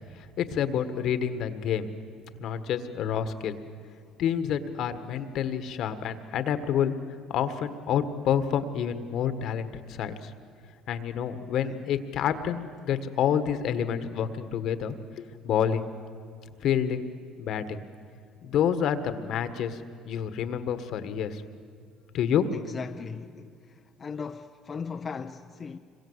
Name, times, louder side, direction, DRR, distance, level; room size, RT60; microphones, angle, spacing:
voice 1, 0.4-1.9 2.4-3.5 4.2-7.0 7.3-10.3 10.9-15.9 16.6-17.1 17.4-17.8 18.4-19.8 20.1-21.4 22.1-22.5, left 8 dB, 60° left, 1.6 m, -28 dB
voice 2, 22.5-25.8, left 5 dB, 30° left, 0.8 m, -38 dB
26.0 x 22.5 x 8.1 m
supercardioid pair, 100°, 0 cm